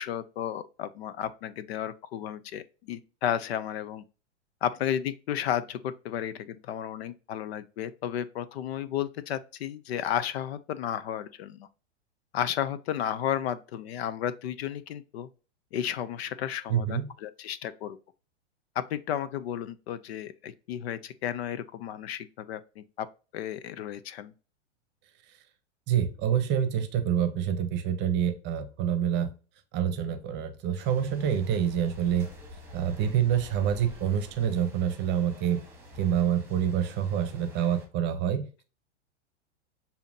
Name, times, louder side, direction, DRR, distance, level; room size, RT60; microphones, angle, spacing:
voice 1, 0.0-4.0 4.6-11.7 12.3-15.3 15.7-18.0 18.8-23.1 23.3-24.3, left 10 dB, 60° left, 0.6 m, -33 dB
voice 2, 16.7-17.0 25.9-29.3 29.7-32.3 32.7-35.6 36.0-38.6, right 9 dB, 30° right, 0.8 m, -27 dB
sound 1, 30.8-37.9, left 1 dB, 5° right, 1.2 m, -48 dB
6.8 x 2.8 x 2.7 m
hypercardioid pair, 125°, 35 cm